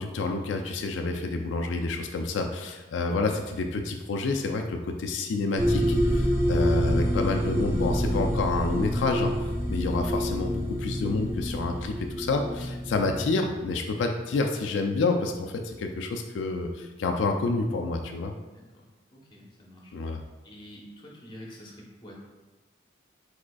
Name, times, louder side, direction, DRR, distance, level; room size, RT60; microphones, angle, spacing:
voice 1, 0.0-18.3 19.9-20.2, left 3 dB, 80° left, 4 dB, 0.3 m, -29 dB
sound 1, 5.6-13.2, equal, 15° right, 0.6 m, -27 dB
voice 2, 19.1-19.9 20.4-21.7 22.0-22.2, equal, 25° left, -3 dB, 0.8 m, -46 dB
4.9 x 4.1 x 2.3 m, 1.2 s
head